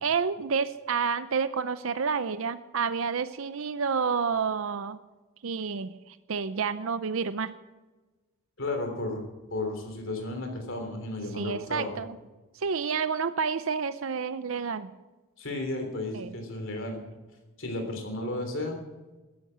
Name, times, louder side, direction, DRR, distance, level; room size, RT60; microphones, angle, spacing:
voice 1, 0.0-5.0 5.4-7.5 11.4-12.1 12.6-14.9 16.1-16.3, right 5 dB, 70° right, 12 dB, 0.6 m, -29 dB
voice 2, 8.6-9.2 9.5-11.9 15.4-17.0 17.6-18.8, left 2 dB, 60° left, 4 dB, 3.4 m, -33 dB
14.0 x 10.5 x 7.4 m, 1.2 s
head